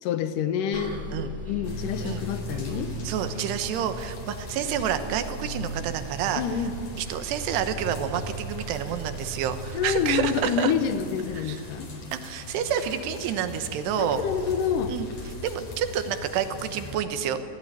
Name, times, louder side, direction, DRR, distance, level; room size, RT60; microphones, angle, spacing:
voice 1, 0.0-1.0 1.5-2.9 6.3-6.8 9.7-11.9 14.0-15.0, left 7 dB, 70° left, 10 dB, 2.3 m, -27 dB
Bus, 0.7-10.3, right 2 dB, 25° right, 1.6 m, -39 dB
sound 1, 1.6-17.0, left 1 dB, 40° left, 3.8 m, -39 dB
voice 2, 3.0-6.4 7.0-10.7 11.3-11.6 12.1-14.2 14.9-15.1 15.4-17.4, right 9 dB, 85° right, 9 dB, 3.3 m, -29 dB
19.5 x 15.0 x 9.9 m, 2.4 s
omnidirectional pair, 4.7 m